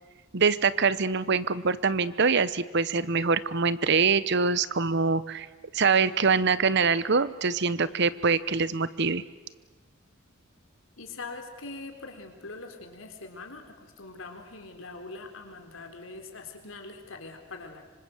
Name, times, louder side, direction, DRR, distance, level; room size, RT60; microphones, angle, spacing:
voice 1, 0.3-5.5 5.7-9.2, right 5 dB, 60° right, 16 dB, 0.9 m, -24 dB
voice 2, 11.0-17.9, left 3 dB, 80° left, 5 dB, 3.8 m, -43 dB
26.0 x 25.0 x 7.9 m, 1.3 s
head